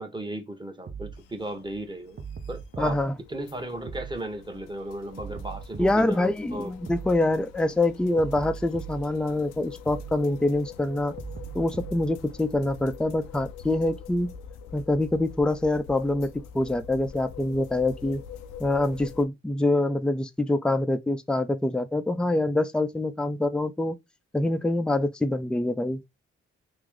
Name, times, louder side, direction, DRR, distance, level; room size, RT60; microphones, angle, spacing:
voice 1, 0.0-3.0 3.3-6.7, right 1 dB, 15° right, 1.2 m, -36 dB
sound 1, 0.9-1.2 2.2-3.0 3.9-4.2 5.2-6.1 6.9-7.2 8.2-9.1 9.9-10.2 11.2-12.1, right 6 dB, 35° right, 0.8 m, -38 dB
sound 2, 1.1-19.2, left 7 dB, 85° left, 0.5 m, -45 dB
voice 2, 2.8-3.1 5.8-11.1 11.5-14.3 14.7-18.2 18.6-24.0 24.3-26.0, left 2 dB, 5° left, 0.4 m, -25 dB
3.0 x 2.5 x 3.7 m
supercardioid pair, 45°, 30 cm